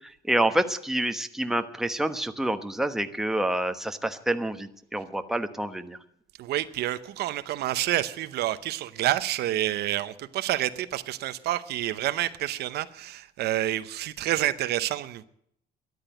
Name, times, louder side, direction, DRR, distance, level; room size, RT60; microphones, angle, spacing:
voice 1, 0.3-6.0, right 1 dB, ahead, 1.1 m, -27 dB
voice 2, 6.4-15.2, right 14 dB, 75° right, 0.8 m, -28 dB
13.0 x 11.0 x 9.1 m
cardioid pair, 110°, 17 cm